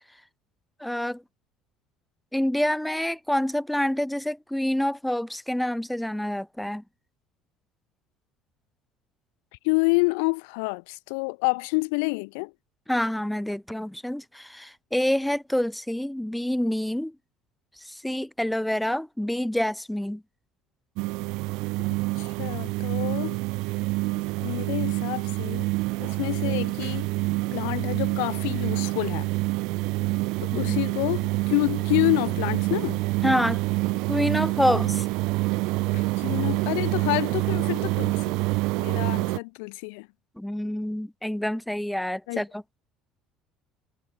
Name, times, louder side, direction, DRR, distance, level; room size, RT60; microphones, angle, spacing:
voice 1, 0.8-1.2 2.3-6.8 12.9-17.2 17.8-20.2 30.6-30.8 33.2-33.7 34.1-35.0 40.4-42.6, left 1 dB, 5° left, 1.9 m, -27 dB
voice 2, 9.6-12.5 21.9-23.4 24.4-25.7 26.0-27.1 27.5-29.3 30.4-33.0 34.7-34.8 35.9-38.4 38.8-40.1 42.3-42.4, left 34 dB, 85° left, 0.7 m, -28 dB
sound 1, 21.0-39.4, right 24 dB, 75° right, 2.8 m, -27 dB
supercardioid pair, 100°, 0 cm